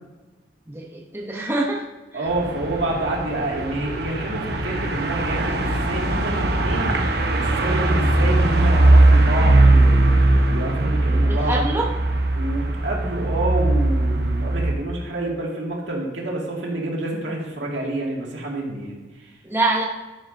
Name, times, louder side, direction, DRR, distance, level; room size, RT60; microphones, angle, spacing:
voice 1, 0.7-1.8 2.1-2.3 11.2-11.9 19.4-19.8, right 2 dB, 15° right, -1 dB, 0.9 m, -25 dB
voice 2, 2.1-6.9 7.2-10.0 10.5-11.7 12.4-19.3, right 1 dB, 80° right, -2 dB, 2.2 m, -28 dB
sound 1, 2.3-14.7, right 2 dB, 60° right, 1.0 m, -19 dB
11.5 x 10.5 x 2.7 m, 1.2 s
head